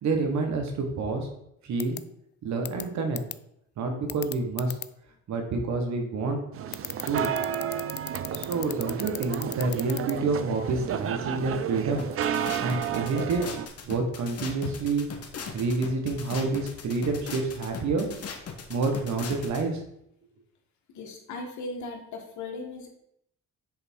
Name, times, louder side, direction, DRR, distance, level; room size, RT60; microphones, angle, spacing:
voice 1, 0.0-1.3 1.6-2.0 2.4-3.2 3.8-4.8 5.3-6.4 7.1-7.4 8.3-12.0 12.6-13.4 13.8-15.1 15.5-18.1 18.7-19.8, right 3 dB, 65° right, 4 dB, 1.5 m, -28 dB
sound 1, 1.8-2.0 2.7-2.8 3.2-3.3 4.1-4.9 6.7-10.1, left 10 dB, 35° left, 0.4 m, -34 dB
sound 2, 6.5-13.7, right 8 dB, 50° right, 0.5 m, -32 dB
sound 3, 12.0-19.6, left 6 dB, 55° left, 1.1 m, -39 dB
voice 2, 20.9-22.9, left 3 dB, 70° left, 2 dB, 1.5 m, -38 dB
7.9 x 3.4 x 4.6 m, 0.76 s
cardioid pair, 90°, 30 cm